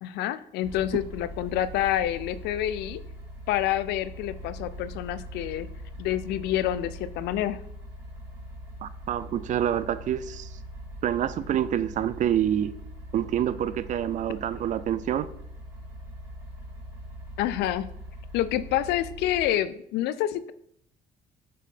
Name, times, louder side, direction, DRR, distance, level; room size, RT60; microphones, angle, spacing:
voice 1, 0.0-3.0 3.5-5.7 6.0-7.6 17.4-17.9 18.3-20.5, left 12 dB, 80° left, 0.4 m, -28 dB
sound 1, 0.6-19.5, equal, 15° right, 2.2 m, -42 dB
voice 2, 8.8-10.5 11.0-12.7 13.1-15.3, right 10 dB, 50° right, 0.4 m, -27 dB
6.6 x 3.8 x 3.7 m
cardioid pair, 110°, 17 cm